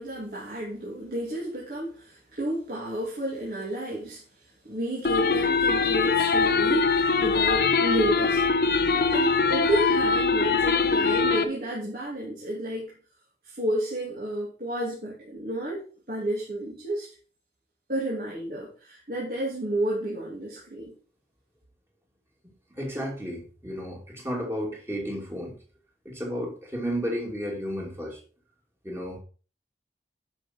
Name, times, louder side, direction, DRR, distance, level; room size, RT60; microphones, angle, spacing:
voice 1, 0.0-4.2 4.7-8.6 9.1-12.9 13.4-17.1 17.9-20.9, right 1 dB, 50° right, -6 dB, 2.7 m, -31 dB
sound 1, 5.0-11.4, left 4 dB, 55° left, 0.8 m, -22 dB
voice 2, 22.7-25.5 26.0-28.2 28.8-29.2, equal, 15° right, -1 dB, 2.6 m, -32 dB
9.9 x 5.9 x 4.4 m, 0.38 s
head